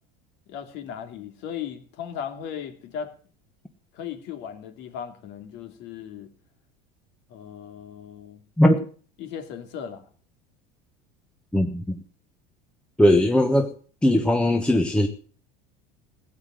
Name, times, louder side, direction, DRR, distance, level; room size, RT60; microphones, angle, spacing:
voice 1, 0.5-3.1 3.9-6.3 7.3-8.4 9.2-10.0, left 8 dB, 60° left, 7 dB, 2.8 m, -37 dB
voice 2, 11.5-12.0 13.0-13.7 14.0-15.1, left 1 dB, 5° left, 4 dB, 1.1 m, -19 dB
16.5 x 8.2 x 7.7 m, 0.43 s
supercardioid pair, 130°, 21 cm